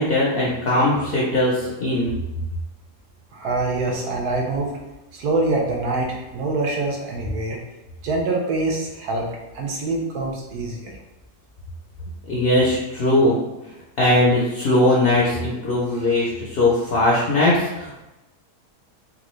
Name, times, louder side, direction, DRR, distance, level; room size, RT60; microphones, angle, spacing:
voice 1, 0.0-2.1 12.3-13.4 14.0-18.1, left 1 dB, 65° left, -5 dB, 0.5 m, -20 dB
voice 2, 3.3-4.8 5.1-7.6 8.0-10.9, right 2 dB, 75° right, 0 dB, 1.2 m, -25 dB
3.6 x 2.3 x 3.0 m, 1.0 s
omnidirectional pair, 1.7 m